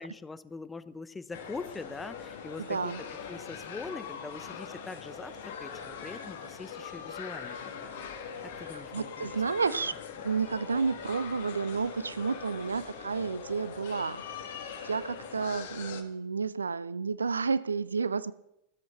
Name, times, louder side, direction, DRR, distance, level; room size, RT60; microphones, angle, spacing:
voice 1, 0.0-2.9 3.3-7.9 8.4-9.3 9.7-9.8, left 4 dB, 10° left, 15 dB, 0.6 m, -43 dB
sound 1, 1.3-16.0, left 6 dB, 55° left, 1.6 m, -42 dB
voice 2, 2.6-3.0 8.6-9.9 10.2-14.2 14.8-18.3, right 5 dB, 75° right, 17 dB, 0.4 m, -31 dB
13.0 x 7.9 x 6.8 m, 0.88 s
figure-of-eight pair, 90°, 0 cm